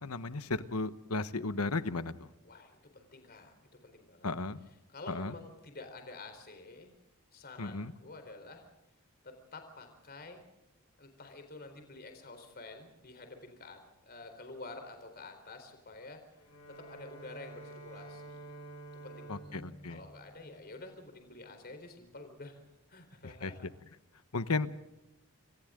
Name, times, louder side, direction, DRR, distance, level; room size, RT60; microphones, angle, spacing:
voice 1, 0.0-2.3 4.2-4.6 5.1-5.3 7.6-7.9 19.3-20.0 23.2-23.5 24.3-24.7, left 3 dB, 85° left, 12 dB, 1.2 m, -34 dB
voice 2, 2.4-4.3 4.9-6.9 7.3-8.6 9.2-10.4 11.0-16.2 16.7-18.5 18.9-22.6 22.9-23.7, left 2 dB, 45° left, 6 dB, 4.0 m, -49 dB
Bowed string instrument, 16.4-21.3, right 2 dB, 65° left, 5.5 m, -50 dB
29.5 x 25.5 x 3.8 m, 0.94 s
head